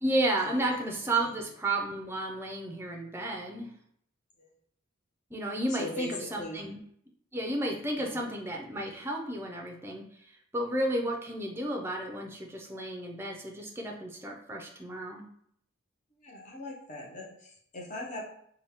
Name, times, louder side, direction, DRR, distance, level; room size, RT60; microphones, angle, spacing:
voice 1, 0.0-3.7 5.3-6.8 7.3-10.0 10.5-15.3, right 1 dB, 10° right, 0 dB, 0.5 m, -32 dB
voice 2, 5.7-6.1 6.4-6.7 8.0-8.2 16.2-18.2, left 2 dB, 35° left, -3 dB, 0.9 m, -40 dB
3.8 x 2.2 x 3.5 m, 0.68 s
head